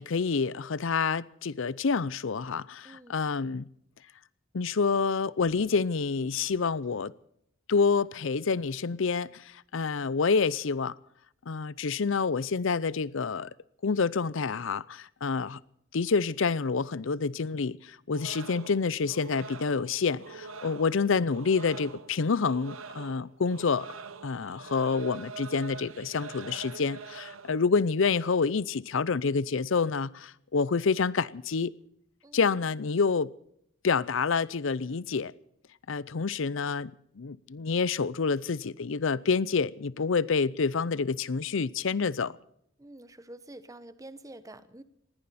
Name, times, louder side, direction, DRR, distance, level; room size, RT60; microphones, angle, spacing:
voice 1, 0.0-3.7 4.5-7.1 7.7-10.9 11.5-13.5 13.8-15.6 15.9-23.9 24.2-31.7 32.3-33.3 33.8-35.3 35.9-42.3, left 5 dB, 65° left, 0.6 m, -28 dB
voice 2, 2.8-3.2 32.2-32.6 42.8-44.8, right 1 dB, 15° right, 1.0 m, -48 dB
sound 1, 18.1-27.5, right 4 dB, 80° right, 1.1 m, -44 dB
20.0 x 17.0 x 4.2 m
head